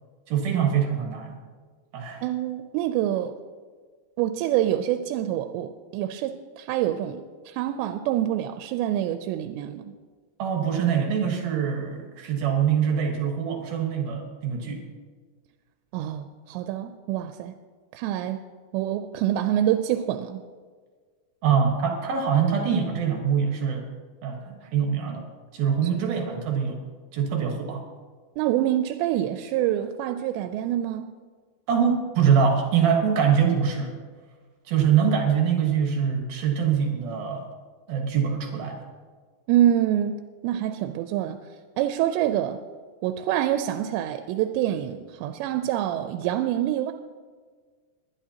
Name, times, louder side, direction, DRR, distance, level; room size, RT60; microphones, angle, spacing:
voice 1, 0.3-1.4 1.9-2.2 10.4-14.8 21.4-23.9 24.2-25.3 25.5-26.8 27.1-27.8 31.7-33.9 34.7-37.5 37.9-38.8, right 7 dB, 65° right, 1 dB, 3.0 m, -24 dB
voice 2, 2.2-3.3 4.2-9.9 15.9-17.5 17.9-18.4 18.7-20.4 28.4-31.1 39.5-41.4 41.8-42.6 43.0-46.9, right 12 dB, 85° right, 8 dB, 2.8 m, -26 dB
21.0 x 11.5 x 2.8 m, 1.6 s
omnidirectional pair, 5.0 m